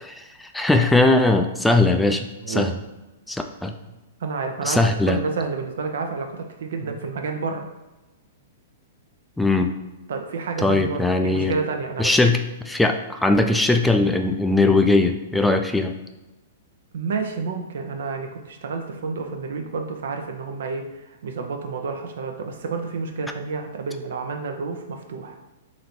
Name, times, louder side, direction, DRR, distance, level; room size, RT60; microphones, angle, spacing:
voice 1, 0.2-2.7 3.3-3.7 4.7-5.2 9.4-9.7 10.6-11.5 12.0-16.0, left 2 dB, 5° left, 5 dB, 0.3 m, -20 dB
voice 2, 2.4-2.7 4.2-7.7 10.1-12.1 16.9-25.4, right 4 dB, 75° right, 4 dB, 0.6 m, -30 dB
3.0 x 2.7 x 4.3 m, 1.0 s
hypercardioid pair, 125°, 0 cm